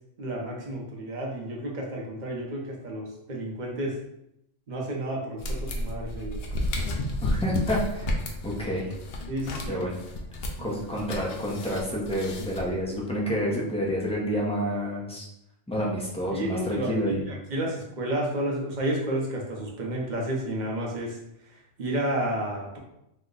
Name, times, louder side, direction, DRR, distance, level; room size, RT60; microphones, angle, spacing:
voice 1, 0.2-3.9 4.7-6.4 9.3-9.8 10.6-10.8 12.6-12.8 13.3-13.5 16.3-21.2 21.8-22.8, right 1 dB, 45° right, -2 dB, 0.8 m, -31 dB
sound 1, 5.4-13.0, left 1 dB, 65° left, 0.7 m, -32 dB
voice 2, 7.2-8.1 8.4-8.9 9.7-9.9 10.6-15.3 15.7-17.2, equal, 10° left, -4 dB, 0.4 m, -29 dB
3.1 x 2.1 x 3.7 m, 0.81 s
omnidirectional pair, 1.2 m